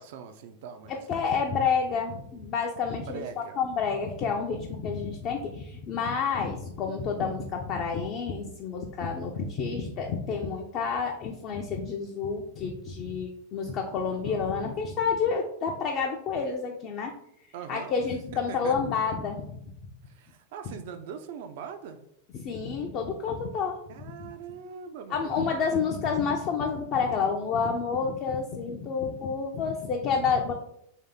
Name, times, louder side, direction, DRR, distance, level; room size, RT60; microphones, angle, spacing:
voice 1, 0.0-1.1 2.9-3.6 14.0-14.4 17.5-17.9 18.3-18.7 20.1-22.0 23.9-25.8, right 7 dB, 50° right, 9 dB, 0.4 m, -42 dB
voice 2, 0.9-17.1 17.7-19.7 22.3-23.8 25.1-30.5, left 5 dB, 35° left, 2 dB, 0.4 m, -29 dB
3.2 x 2.8 x 3.5 m, 0.73 s
figure-of-eight pair, 90°, 0 cm